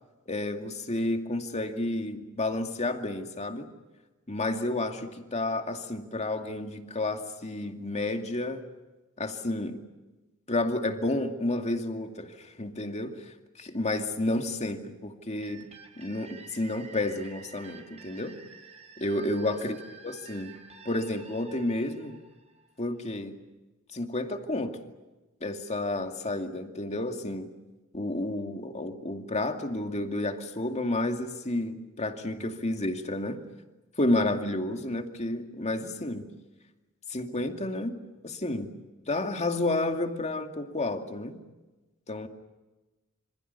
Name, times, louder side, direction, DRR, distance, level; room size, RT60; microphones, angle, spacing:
voice 1, 0.3-3.7 4.3-8.6 9.2-9.8 10.5-13.3 13.6-15.7 16.0-18.4 19.0-19.8 20.0-20.5 20.8-22.2 22.8-23.4 23.9-24.8 25.4-27.5 27.9-33.4 34.0-36.3 37.1-38.0 38.2-38.7 39.1-41.4 42.1-42.3, left 2 dB, 30° left, 5 dB, 2.4 m, -31 dB
sound 1, 15.4-23.0, right 5 dB, 30° right, 4.4 m, -50 dB
27.5 x 26.5 x 6.9 m, 1.1 s
head